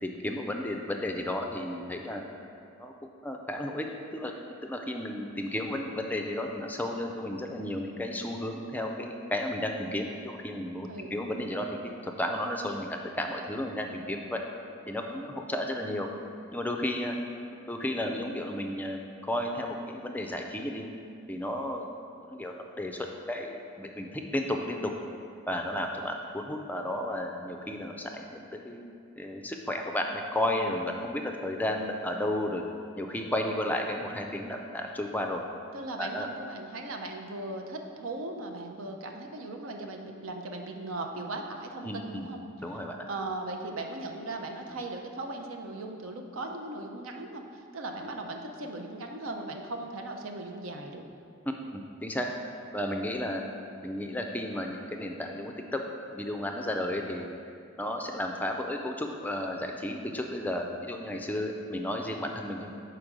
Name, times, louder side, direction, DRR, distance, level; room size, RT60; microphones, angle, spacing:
voice 1, 0.0-2.2 2.8-2.9 3.2-14.4 14.9-16.1 16.5-17.2 17.7-20.9 21.3-21.8 22.2-24.9 25.5-28.8 29.2-32.6 33.0-35.4 36.0-36.3 41.8-42.3 42.6-43.1 51.5-52.3 52.7-53.4 53.8-55.8 56.1-57.3 57.8-62.7, left 1 dB, 10° left, 3 dB, 0.4 m, -33 dB
voice 2, 35.7-42.4 43.1-51.0, right 2 dB, 80° right, 3 dB, 0.6 m, -38 dB
5.0 x 4.5 x 6.0 m, 2.4 s
head